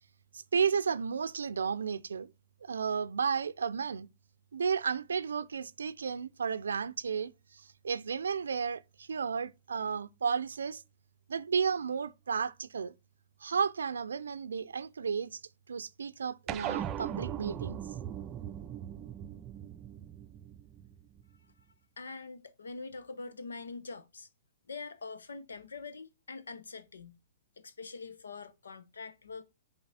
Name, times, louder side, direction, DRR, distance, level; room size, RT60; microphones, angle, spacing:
voice 1, 0.3-2.3 2.6-4.1 4.5-10.8 11.3-12.9 13.4-15.4 15.7-17.8, right 6 dB, 80° right, 0.5 m, -33 dB
sound 1, 16.5-21.2, right 10 dB, 30° right, 0.5 m, -39 dB
voice 2, 22.0-24.3 24.7-27.2 27.6-29.4, left 4 dB, 85° left, 0.9 m, -44 dB
7.8 x 4.0 x 4.1 m
hypercardioid pair, 120°, 0 cm